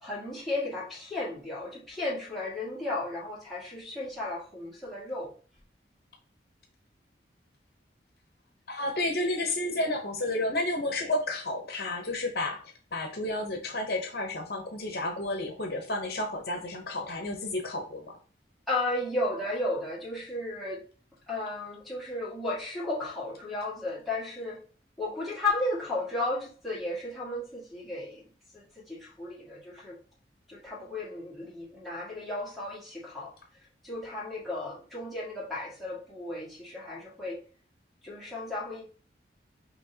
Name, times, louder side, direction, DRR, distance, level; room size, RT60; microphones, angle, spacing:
voice 1, 0.0-5.3 18.7-20.8 21.3-24.6 25.0-28.2 28.5-30.0 30.5-33.3 33.8-37.4 38.0-38.8, left 2 dB, ahead, 1.7 m, -34 dB
voice 2, 8.7-12.6 12.9-18.1, left 2 dB, 55° left, 0.8 m, -31 dB
6.0 x 2.9 x 2.8 m
head